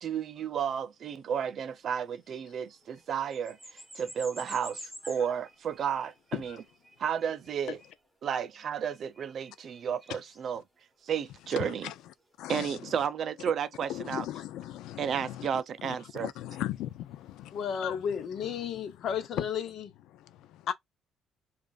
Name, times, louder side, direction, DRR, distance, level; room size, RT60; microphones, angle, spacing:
voice 1, 0.0-6.1 7.0-7.8 8.2-10.6 11.0-11.8 12.5-14.2 15.0-16.3, right 8 dB, 45° right, 0.4 m, -32 dB
sound 1, 2.1-12.7 14.5-14.6 15.7-18.7, equal, 5° right, 1.0 m, -52 dB
voice 2, 4.8-5.3 6.3-6.6 7.7-7.8 10.1-10.2 10.6-10.7 11.4-13.1 13.9-19.5 20.0-20.7, left 13 dB, 85° left, 0.4 m, -40 dB
voice 3, 17.5-19.6 20.7-20.8, left 7 dB, 50° left, 0.8 m, -32 dB
5.1 x 2.4 x 2.4 m
cardioid pair, 150°, 0 cm